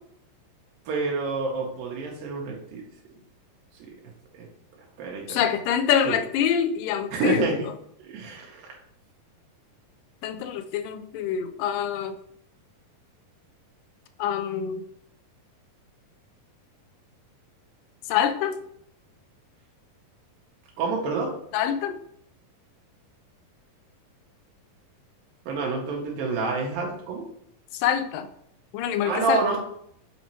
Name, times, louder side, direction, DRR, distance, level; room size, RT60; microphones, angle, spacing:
voice 1, 0.9-2.8 3.8-3.9 4.3-4.5 5.0-5.4 6.1-6.2 7.1-7.6 8.0-8.7 20.8-21.3 25.5-27.3 29.0-29.6, right 4 dB, 85° right, -1 dB, 2.8 m, -28 dB
voice 2, 5.3-7.6 10.2-12.1 14.2-14.8 18.1-18.6 21.5-22.0 27.7-28.3 28.7-29.4, left 9 dB, 80° left, 9 dB, 2.2 m, -25 dB
8.2 x 2.9 x 4.4 m, 0.69 s
omnidirectional pair, 4.0 m